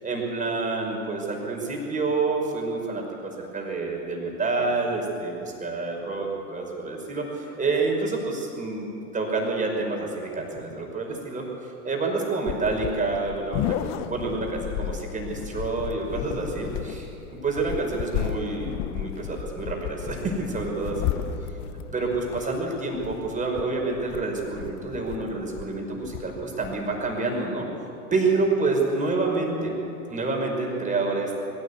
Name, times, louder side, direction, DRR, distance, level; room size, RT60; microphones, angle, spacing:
voice 1, 0.0-8.9 9.1-17.1 17.4-21.2 21.9-27.7 28.1-29.8 30.1-31.3, right 3 dB, 15° right, 0 dB, 5.3 m, -28 dB
sound 1, 12.4-27.2, left 11 dB, 40° left, 1.1 m, -34 dB
22.0 x 16.5 x 8.3 m, 2.8 s
hypercardioid pair, 100°, 45 cm